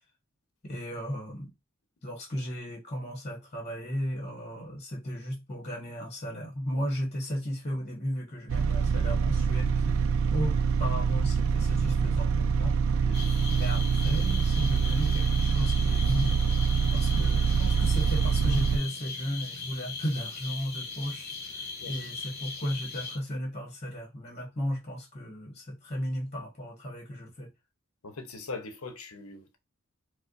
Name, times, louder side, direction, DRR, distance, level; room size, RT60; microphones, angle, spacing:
voice 1, 0.6-1.5 2.0-12.8 13.5-16.4 16.9-27.5, equal, 30° left, 1.2 m, -35 dB
sound 1, 8.5-18.8, right 6 dB, 70° right, 0.3 m, -25 dB
voice 2, 13.0-13.4 21.8-21.9 28.0-29.6, left 3 dB, 85° left, 0.8 m, -41 dB
sound 2, 13.1-23.2, left 4 dB, 50° left, 0.8 m, -39 dB
4.4 x 2.1 x 2.5 m
head